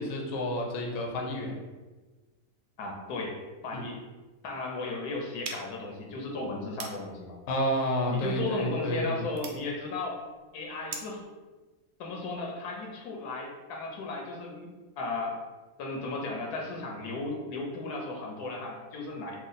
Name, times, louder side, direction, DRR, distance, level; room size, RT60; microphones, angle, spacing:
voice 1, 0.0-1.6 3.7-3.8 7.5-9.2, equal, 65° left, 0 dB, 0.9 m, -30 dB
voice 2, 2.8-4.0 4.4-7.4 8.1-10.2 10.5-11.2 12.0-14.7 15.0-15.4 15.8-19.4, left 3 dB, 85° left, 0 dB, 1.2 m, -35 dB
sound 1, 5.4-11.3, right 4 dB, 70° right, 0.6 m, -45 dB
3.1 x 2.2 x 3.9 m, 1.2 s
omnidirectional pair, 1.6 m